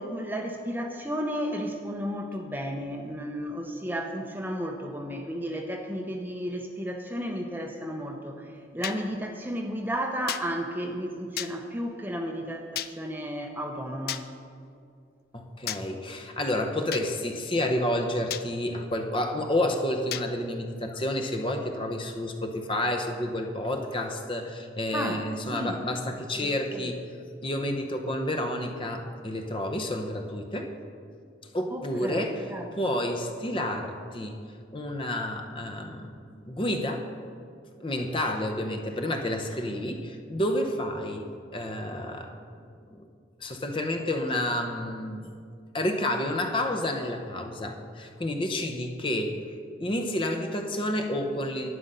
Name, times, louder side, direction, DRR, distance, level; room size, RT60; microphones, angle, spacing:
voice 1, 0.0-14.2 24.9-25.2 25.5-25.8 26.4-26.5 26.8-26.9 31.7-32.7, equal, 10° right, 3 dB, 0.7 m, -33 dB
sound 1, 8.8-9.0 10.3-10.4 11.4-11.5 12.7-12.9 14.1-14.2 15.7-15.8 16.9-17.1 18.3-18.5 20.1-20.3, left 11 dB, 50° left, 0.4 m, -32 dB
voice 2, 15.3-27.1 27.4-30.7 31.5-32.4 32.8-34.4 34.7-36.1 36.4-37.1 37.8-41.2 41.5-42.4 43.0-43.1 43.4-45.3 45.7-49.4 49.8-51.7, left 1 dB, 25° left, 4 dB, 0.8 m, -30 dB
11.0 x 9.5 x 5.5 m, 2.3 s
head